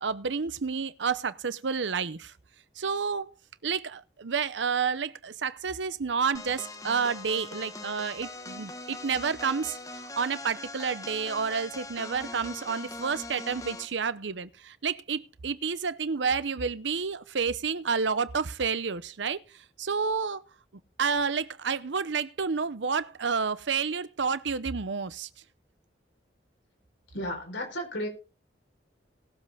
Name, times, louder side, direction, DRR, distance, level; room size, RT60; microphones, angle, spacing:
voice 1, 0.0-2.3 2.8-3.3 3.6-20.4 21.0-25.3, right 5 dB, 85° right, 0.7 m, -30 dB
sound 1, 6.3-14.0, left 2 dB, 20° left, 1.0 m, -41 dB
voice 2, 27.1-28.1, equal, 85° left, 4.2 m, -33 dB
19.0 x 7.5 x 3.5 m
head